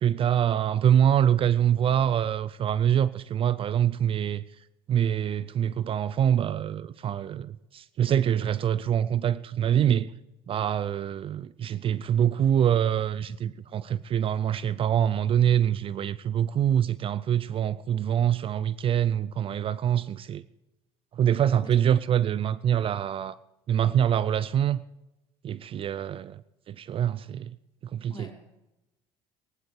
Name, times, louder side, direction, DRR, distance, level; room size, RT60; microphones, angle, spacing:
voice 1, 0.0-4.4 4.9-10.1 10.5-20.4 21.2-23.4 23.7-24.8 25.4-26.4 26.7-27.5 27.9-28.3, right 9 dB, 40° right, 0.5 m, -25 dB
voice 2, 21.2-21.7 28.1-28.3, left 3 dB, 30° left, 4.2 m, -48 dB
18.0 x 11.0 x 4.8 m
supercardioid pair, 90°, 14 cm